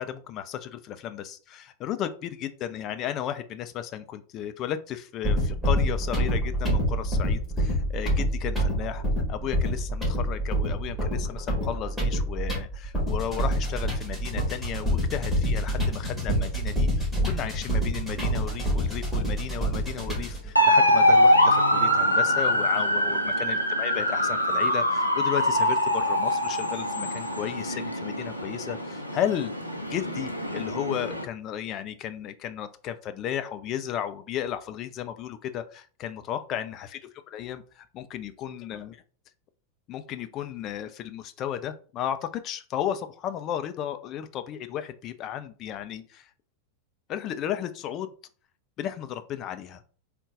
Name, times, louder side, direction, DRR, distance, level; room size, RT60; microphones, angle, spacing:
voice 1, 0.0-9.0 9.3-29.5 29.9-37.0 37.3-39.0 39.9-46.3 47.1-48.1 48.8-49.8, left 10 dB, 35° left, 10 dB, 0.4 m, -34 dB
sound 1, 5.2-20.5, equal, ahead, 1.7 m, -27 dB
sound 2, 20.6-31.2, left 1 dB, 90° left, 0.6 m, -23 dB
3.8 x 2.2 x 3.8 m, 0.40 s
figure-of-eight pair, 90°, 0 cm